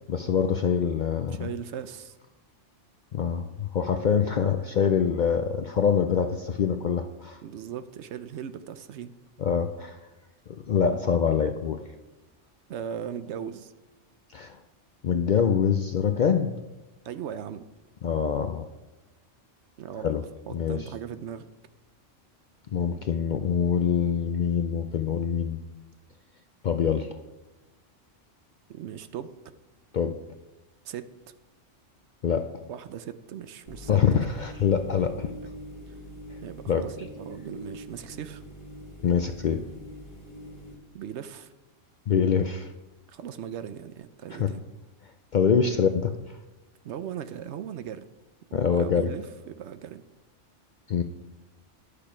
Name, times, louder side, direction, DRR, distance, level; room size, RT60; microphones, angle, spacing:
voice 1, 0.1-1.5 3.1-7.4 9.4-10.0 10.7-11.8 14.3-14.6 15.0-16.6 18.0-18.6 20.0-20.2 20.5-20.8 22.7-25.6 26.6-27.2 29.9-30.3 32.2-32.6 33.9-35.3 36.7-36.9 39.0-39.7 42.1-42.7 44.4-44.5 45.3-46.1 48.5-49.1 50.9-51.0, left 7 dB, 60° left, 7 dB, 0.5 m, -25 dB
voice 2, 1.4-2.2 7.4-9.1 12.7-13.7 17.0-17.7 19.8-20.1 20.5-21.4 28.7-29.3 30.8-31.1 32.7-34.2 35.4-35.5 36.4-38.4 40.9-41.5 43.1-44.6 46.8-48.0 48.5-50.0, right 9 dB, 70° right, 12 dB, 0.9 m, -38 dB
sound 1, 33.7-40.7, equal, 25° left, 1.5 m, -44 dB
10.0 x 6.7 x 5.0 m, 1.1 s
omnidirectional pair, 1.3 m